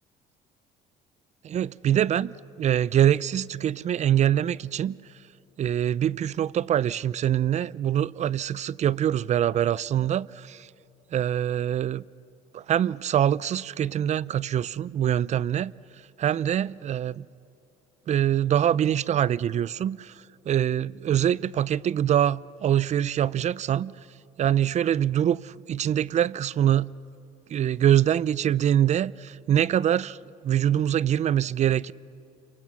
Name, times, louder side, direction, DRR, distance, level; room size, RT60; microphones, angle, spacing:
voice 1, 1.4-5.0 5.6-10.7 11.1-12.0 12.5-15.7 16.2-17.3 18.1-20.1 20.5-24.0 24.4-26.9 27.5-29.1 29.5-30.2 30.4-31.9, right 10 dB, 45° right, 0.5 m, -24 dB
29.0 x 24.0 x 6.1 m
cardioid pair, 110°, 17 cm